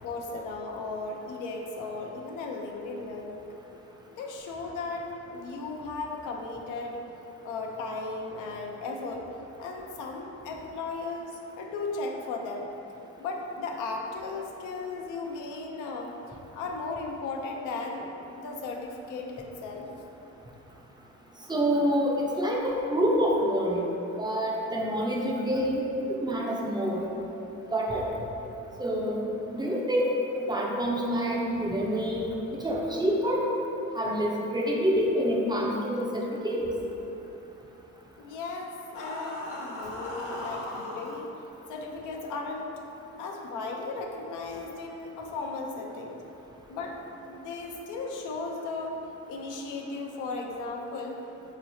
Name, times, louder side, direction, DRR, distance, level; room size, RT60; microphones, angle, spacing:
voice 1, 0.0-3.4 4.1-7.0 7.4-9.2 9.6-12.7 13.2-19.9 38.2-41.3 41.7-42.7 43.2-46.2 46.7-49.0 49.3-51.2, left 3 dB, 85° left, 1 dB, 0.5 m, -36 dB
voice 2, 21.5-23.9 24.2-25.8 26.1-27.1 27.7-28.1 28.8-29.2 29.5-33.4 33.9-36.7, equal, 15° right, -3 dB, 0.4 m, -27 dB
sound 1, 38.9-41.1, left 1 dB, 50° left, 0.7 m, -37 dB
3.9 x 3.0 x 2.6 m, 2.9 s
cardioid pair, 90°, 30 cm